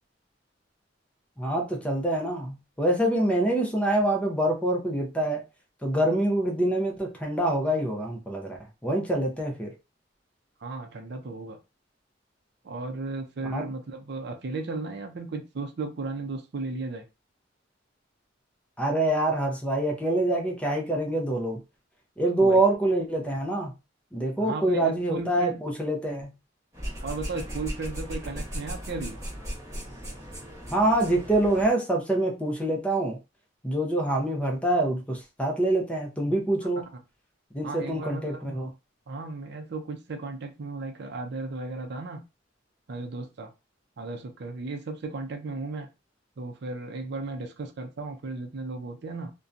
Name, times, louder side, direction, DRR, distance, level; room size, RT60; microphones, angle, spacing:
voice 1, 1.4-5.4 5.8-8.6 8.8-9.7 13.5-13.7 18.8-21.6 22.2-23.7 24.1-26.3 30.7-33.2 33.6-36.8 37.5-38.7, right 1 dB, 5° left, 0.6 m, -25 dB
voice 2, 10.6-11.6 12.6-17.0 22.4-22.6 24.4-25.6 27.0-29.2 37.6-38.7 39.1-42.2 42.9-43.5 44.0-45.9 46.4-49.3, right 3 dB, 60° right, 0.5 m, -35 dB
sound 1, 26.7-31.7, equal, 15° right, 1.1 m, -37 dB
2.7 x 2.2 x 2.5 m
head